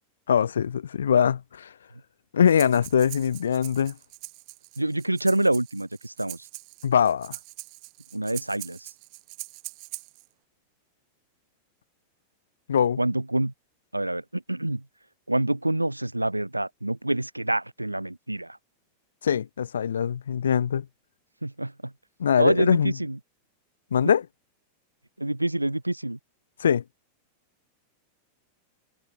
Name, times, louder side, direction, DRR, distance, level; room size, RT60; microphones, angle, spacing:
voice 1, 0.3-1.7 2.3-4.0 6.8-7.4 12.7-13.0 19.2-20.9 22.2-22.9 23.9-24.2 26.6-26.8, left 8 dB, 65° left, 0.5 m, -22 dB
Breathing, 2.5-10.3, right 39 dB, 45° right, 3.8 m, -43 dB
voice 2, 4.8-6.4 8.1-8.9 13.0-13.5 13.9-14.8 15.3-18.6 21.4-21.9 22.4-23.2 25.2-26.2, right 1 dB, 85° right, 1.8 m, -26 dB
figure-of-eight pair, 90°, 0 cm